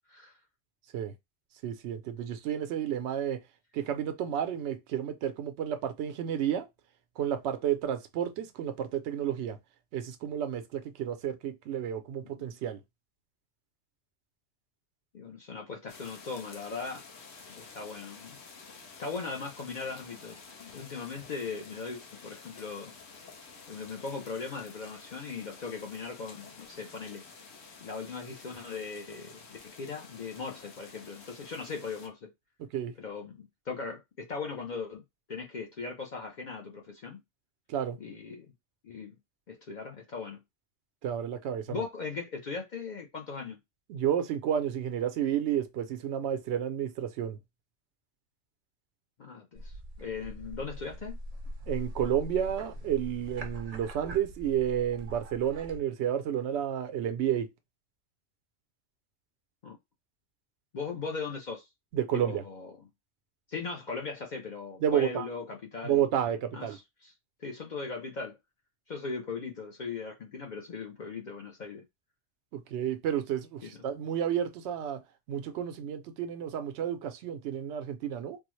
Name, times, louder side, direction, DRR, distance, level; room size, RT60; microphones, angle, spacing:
voice 1, 1.6-3.4 3.7-6.7 7.2-9.6 9.9-12.8 32.7-32.9 37.7-38.0 41.0-41.8 43.9-47.4 51.7-57.5 61.9-62.4 64.8-65.3 65.8-66.8 72.5-75.0 75.3-78.4, right 9 dB, 80° right, 0.9 m, -31 dB
voice 2, 15.1-17.0 17.5-18.4 19.0-22.9 23.7-27.3 27.8-32.3 33.0-35.0 35.3-37.2 38.0-38.5 38.8-39.1 39.5-40.4 41.7-43.6 49.2-51.2 59.6-59.8 60.7-61.7 62.1-62.7 63.5-66.0 66.5-67.1 67.4-68.4 68.9-71.8 73.6-73.8, left 4 dB, 55° left, 0.6 m, -39 dB
sound 1, 15.9-32.1, left 4 dB, 75° left, 1.0 m, -50 dB
sound 2, 49.6-55.8, equal, 45° right, 0.5 m, -42 dB
3.6 x 2.0 x 3.0 m
omnidirectional pair, 1.1 m